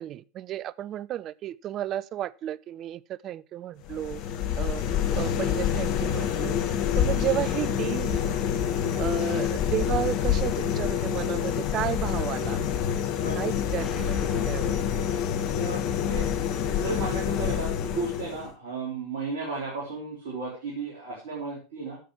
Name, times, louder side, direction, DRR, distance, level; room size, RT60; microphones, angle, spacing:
voice 1, 0.0-4.2 4.6-4.8 5.1-6.6 6.9-8.5 9.0-12.6 13.3-14.8, right 12 dB, 40° right, 0.4 m, -33 dB
sound 1, 3.8-18.5, left 9 dB, 50° left, 1.3 m, -27 dB
voice 2, 8.8-9.1 13.2-13.4 15.5-16.3 16.5-22.0, right 3 dB, 60° right, 3.8 m, -35 dB
Explosion, 13.8-16.0, left 3 dB, 25° left, 2.5 m, -45 dB
10.5 x 7.6 x 4.8 m
figure-of-eight pair, 80°, 0 cm